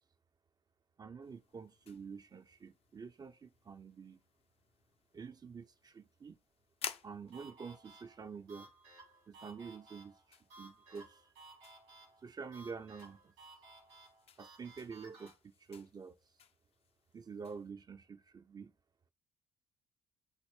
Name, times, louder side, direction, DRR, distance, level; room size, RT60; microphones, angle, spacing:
voice 1, 1.0-4.2 5.1-6.4 7.0-8.7 9.3-11.3 12.2-13.3 14.4-15.3 15.6-16.2 17.1-18.7, right 5 dB, 30° right, 0.4 m, -48 dB
sound 1, 1.2-17.7, left 8 dB, 45° left, 0.5 m, -54 dB
sound 2, 7.3-15.3, right 2 dB, 85° right, 2.6 m, -58 dB
6.4 x 2.5 x 3.3 m
hypercardioid pair, 50°, 14 cm